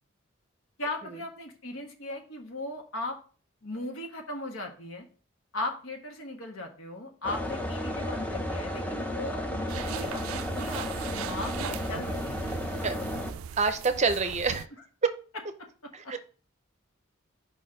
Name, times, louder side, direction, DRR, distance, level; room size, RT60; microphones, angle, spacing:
voice 1, 0.8-3.2 3.6-5.1 5.5-12.5 16.0-16.1, left 2 dB, 75° left, 3 dB, 1.3 m, -37 dB
sound 1, 7.2-13.3, left 1 dB, 5° left, 0.6 m, -33 dB
sound 2, 9.7-14.7, right 8 dB, 80° right, 0.3 m, -39 dB
voice 2, 13.6-14.7 15.9-16.2, right 4 dB, 35° right, 9 dB, 0.6 m, -27 dB
5.0 x 4.3 x 4.9 m, 0.40 s
head